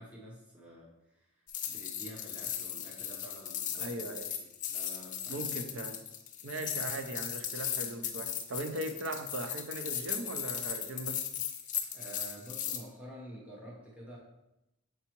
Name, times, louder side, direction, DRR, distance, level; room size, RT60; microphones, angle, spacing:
voice 1, 0.0-3.9 4.2-5.4 11.9-14.2, equal, 5° right, -5 dB, 0.8 m, -49 dB
sound 1, 1.5-12.8, left 9 dB, 35° left, 0.6 m, -37 dB
voice 2, 3.7-4.3 5.3-6.0 6.4-11.2, right 2 dB, 60° right, 7 dB, 0.6 m, -39 dB
6.9 x 4.6 x 3.0 m, 0.92 s
head